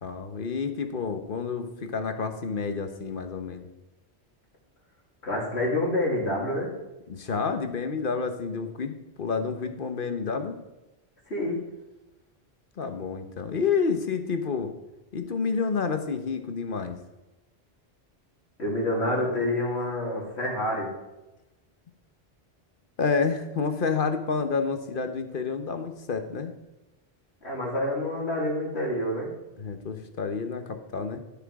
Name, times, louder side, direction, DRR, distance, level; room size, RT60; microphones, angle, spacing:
voice 1, 0.0-3.7 7.1-10.6 12.8-14.7 15.1-17.0 23.0-26.5 29.6-31.2, left 5 dB, 55° left, 8 dB, 1.1 m, -29 dB
voice 2, 5.2-6.7 11.3-11.6 18.6-20.9 27.4-29.3, left 1 dB, 85° left, -3 dB, 3.0 m, -27 dB
12.0 x 6.8 x 4.8 m, 0.99 s
omnidirectional pair, 1.1 m